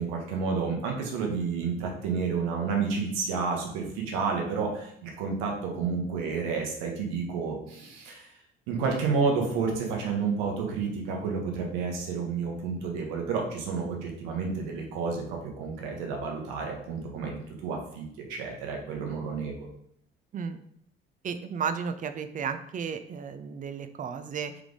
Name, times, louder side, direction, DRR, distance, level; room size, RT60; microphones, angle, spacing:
voice 1, 0.0-8.3 8.7-19.7, right 5 dB, 65° right, 1 dB, 1.0 m, -30 dB
voice 2, 21.2-24.6, right 6 dB, 30° right, 9 dB, 0.4 m, -33 dB
3.5 x 3.4 x 3.6 m, 0.69 s
figure-of-eight pair, 50°, 30 cm